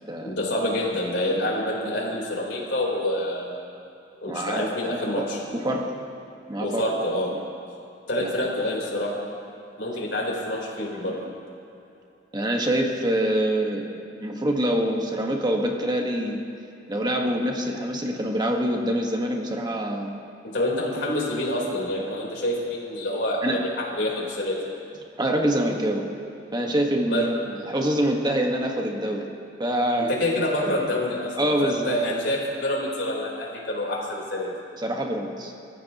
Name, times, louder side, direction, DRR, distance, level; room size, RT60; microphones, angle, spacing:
voice 1, 0.2-3.6 4.2-5.4 6.6-7.3 8.1-9.1 9.8-11.2 20.4-24.6 27.1-27.2 30.0-34.5, left 1 dB, 75° left, -3 dB, 4.0 m, -27 dB
voice 2, 4.3-4.7 5.2-5.3 5.5-5.9 6.5-6.8 8.2-8.3 12.3-13.8 14.2-16.4 16.9-20.1 23.4-23.6 25.2-26.1 26.5-29.3 29.6-30.1 31.4-32.0 34.8-35.5, right 1 dB, 25° right, 1 dB, 1.5 m, -25 dB
29.0 x 15.0 x 3.0 m, 2.8 s
head